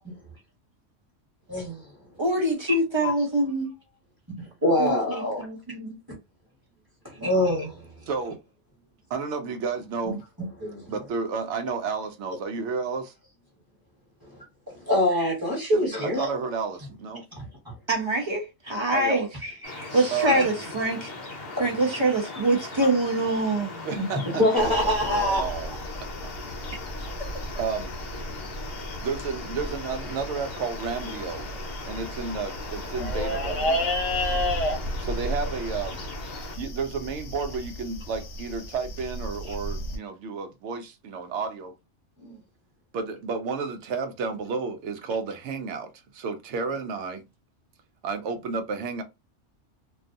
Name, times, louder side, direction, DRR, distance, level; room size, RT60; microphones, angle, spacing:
voice 1, 1.5-1.9 3.0-3.1 4.4-5.4 7.1-7.9 10.6-11.0 14.2-16.3 17.4-17.7 19.4-20.5 23.9-25.6 42.2-42.4, left 1 dB, 20° right, 1.1 m, -26 dB
voice 2, 2.2-3.7 4.8-6.0 17.9-19.3 19.9-23.9, right 2 dB, 40° right, 0.4 m, -25 dB
voice 3, 8.1-8.4 9.1-10.2 10.9-13.1 15.7-17.2 18.9-19.3 20.1-20.4 23.8-25.7 26.0-26.3 27.6-27.9 29.0-31.5 31.9-33.9 35.0-36.0 36.6-41.7 42.9-47.2 48.0-49.0, right 5 dB, 70° right, 0.9 m, -32 dB
sound 1, 19.6-36.6, left 3 dB, 55° left, 1.0 m, -39 dB
sound 2, 24.6-40.0, left 1 dB, 85° left, 1.0 m, -33 dB
2.6 x 2.3 x 2.5 m
omnidirectional pair, 1.3 m